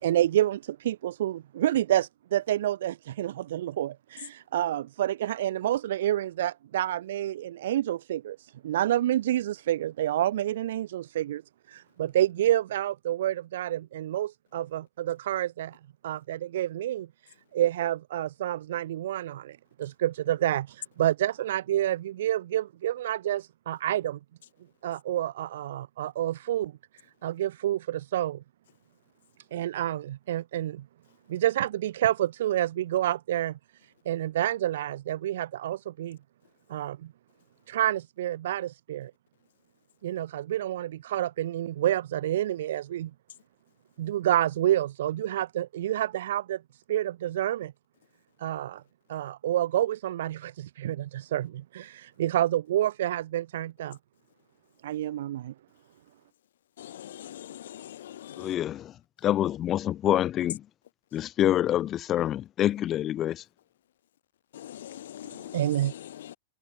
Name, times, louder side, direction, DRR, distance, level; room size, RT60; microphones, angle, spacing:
voice 1, 0.0-11.4 11.7-15.8 16.0-24.2 24.8-26.7 27.2-28.4 29.5-30.9 31.3-36.2 36.7-37.1 37.7-39.1 40.0-43.1 44.0-47.7 48.4-48.8 49.1-54.0 54.8-55.5 65.2-65.9, right 12 dB, 75° right, 1.0 m, -29 dB
voice 2, 56.8-58.5 64.5-66.4, left 11 dB, 85° left, 1.1 m, -43 dB
voice 3, 58.4-58.8 59.2-60.6 61.1-63.4, left 12 dB, 25° left, 0.4 m, -26 dB
supercardioid pair, 145°, 0 cm